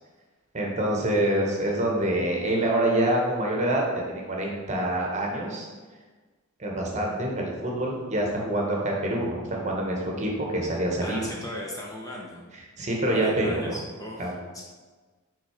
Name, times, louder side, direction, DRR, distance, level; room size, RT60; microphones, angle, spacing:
voice 1, 0.5-5.7 6.6-11.3 12.8-13.8 14.2-14.3, right 1 dB, 35° right, -1 dB, 1.1 m, -26 dB
voice 2, 11.0-12.4 13.1-14.6, left 1 dB, 15° left, -2 dB, 0.7 m, -37 dB
6.0 x 3.7 x 4.9 m, 1.4 s
head